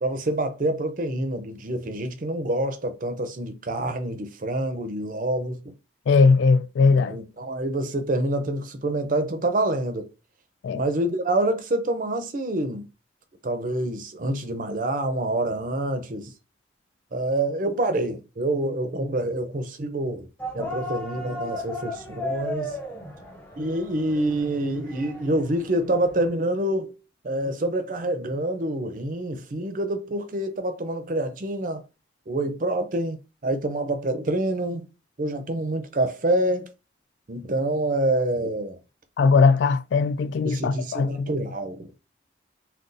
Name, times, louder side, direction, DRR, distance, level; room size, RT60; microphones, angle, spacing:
voice 1, 0.0-5.7 7.1-10.1 10.7-12.9 13.4-16.3 17.1-20.3 20.5-22.7 23.6-26.9 27.2-31.8 32.3-34.9 35.2-36.7 37.3-38.8 40.4-41.9, right 1 dB, 45° right, 0.5 m, -27 dB
voice 2, 6.1-7.2 10.6-10.8 39.2-41.3, left 4 dB, 75° left, 0.3 m, -19 dB
sound 1, 20.4-26.3, left 1 dB, 10° left, 0.6 m, -36 dB
3.8 x 2.3 x 2.5 m
head